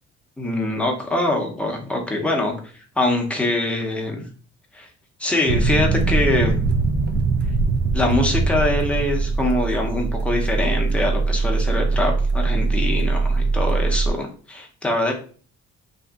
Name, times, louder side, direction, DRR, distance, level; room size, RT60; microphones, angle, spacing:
voice 1, 0.4-2.5 3.0-4.3 4.7-4.9 5.2-6.6 7.9-15.1, left 2 dB, 5° left, 0 dB, 0.6 m, -23 dB
sound 1, 5.5-14.1, right 3 dB, 35° right, 0.4 m, -21 dB
2.7 x 2.6 x 2.3 m, 0.42 s
cardioid pair, 90°, 30 cm